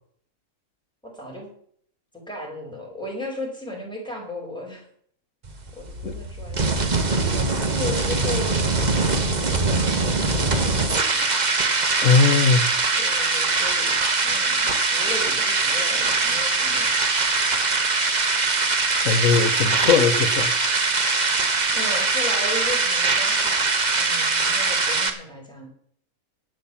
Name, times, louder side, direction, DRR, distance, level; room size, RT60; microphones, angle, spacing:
voice 1, 1.0-1.5 2.1-4.8 5.7-6.8 7.3-11.3 13.0-14.0 14.2-16.9 21.7-23.7 24.0-25.7, left 1 dB, 5° left, -2 dB, 5.1 m, -35 dB
sound 1, 5.4-25.1, right 3 dB, 30° right, 1.2 m, -22 dB
voice 2, 12.0-12.7 19.0-20.5, left 5 dB, 65° left, 6 dB, 1.3 m, -19 dB
11.0 x 8.8 x 7.2 m, 0.62 s
omnidirectional pair, 1.5 m